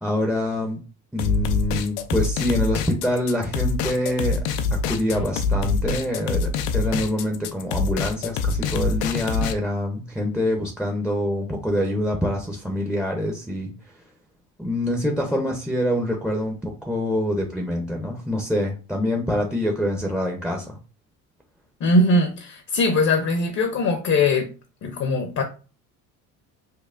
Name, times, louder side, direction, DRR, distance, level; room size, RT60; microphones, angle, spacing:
voice 1, 0.0-0.8 1.1-4.4 4.7-13.7 14.6-20.8, left 1 dB, ahead, 0.6 m, -25 dB
sound 1, 1.2-9.5, left 4 dB, 90° left, 0.5 m, -25 dB
voice 2, 21.8-24.5 24.8-25.4, left 2 dB, 45° left, 0.7 m, -21 dB
5.4 x 2.1 x 2.5 m
supercardioid pair, 90°, 37 cm